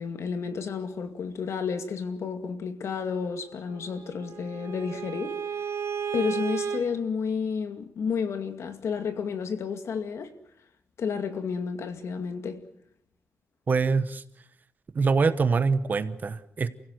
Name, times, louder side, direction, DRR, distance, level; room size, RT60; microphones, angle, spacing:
voice 1, 0.0-5.4 6.1-10.3 11.0-12.6, left 6 dB, 70° left, 2.3 m, -31 dB
Bowed string instrument, 3.7-6.8, right 7 dB, 65° right, 3.3 m, -33 dB
voice 2, 13.7-14.2 14.9-16.7, right 4 dB, 40° right, 1.1 m, -24 dB
29.0 x 16.5 x 7.9 m
wide cardioid pair, 170°, 5 cm